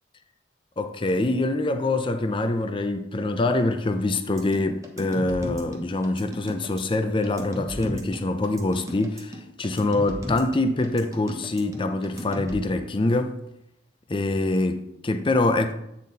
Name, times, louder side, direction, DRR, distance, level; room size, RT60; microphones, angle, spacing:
voice 1, 0.8-13.4 14.1-15.7, left 2 dB, 30° left, 0.5 m, -25 dB
sound 1, 4.4-12.6, equal, 15° right, 1.0 m, -36 dB
8.4 x 4.1 x 4.0 m
head